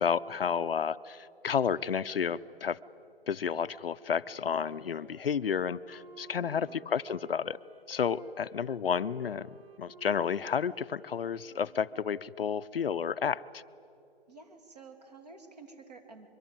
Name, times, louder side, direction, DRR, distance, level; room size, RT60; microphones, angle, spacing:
voice 1, 0.0-2.8 3.3-7.6 7.9-13.6, left 7 dB, 65° left, 14 dB, 0.6 m, -31 dB
Wind instrument woodwind instrument, 4.3-12.4, right 3 dB, 65° right, 3.1 m, -55 dB
voice 2, 6.4-6.8 14.3-16.3, right 4 dB, 40° right, 6 dB, 2.4 m, -51 dB
24.0 x 23.0 x 8.9 m, 2.8 s
hypercardioid pair, 180°, 31 cm